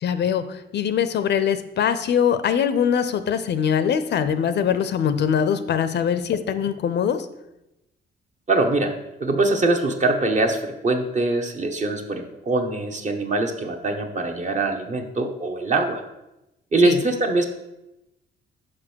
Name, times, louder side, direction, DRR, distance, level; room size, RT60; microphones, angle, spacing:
voice 1, 0.0-7.3 16.8-17.0, left 8 dB, 60° left, 12 dB, 0.6 m, -22 dB
voice 2, 8.5-16.0 16.7-17.5, right 2 dB, 35° right, 4 dB, 1.1 m, -23 dB
5.5 x 5.1 x 6.2 m, 0.92 s
cardioid pair, 90°, 20 cm